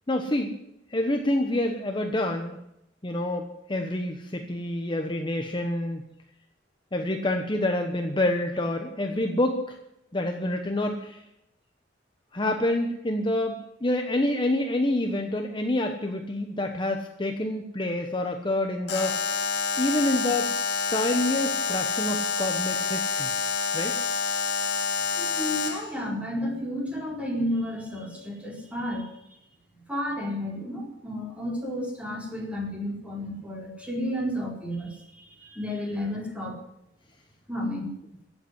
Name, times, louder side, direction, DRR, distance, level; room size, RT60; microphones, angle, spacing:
voice 1, 0.1-0.5 0.9-2.6 3.0-6.0 6.9-9.8 10.1-11.2 12.3-19.2 19.8-20.5 20.9-23.3 23.7-24.0, left 1 dB, 25° left, 4 dB, 1.1 m, -27 dB
Alarm, 18.9-25.9, left 5 dB, 65° left, 1.7 m, -28 dB
voice 2, 25.1-29.1 29.9-36.6 37.5-37.9, left 1 dB, 5° right, -1 dB, 4.4 m, -32 dB
16.5 x 8.2 x 9.7 m, 0.83 s
head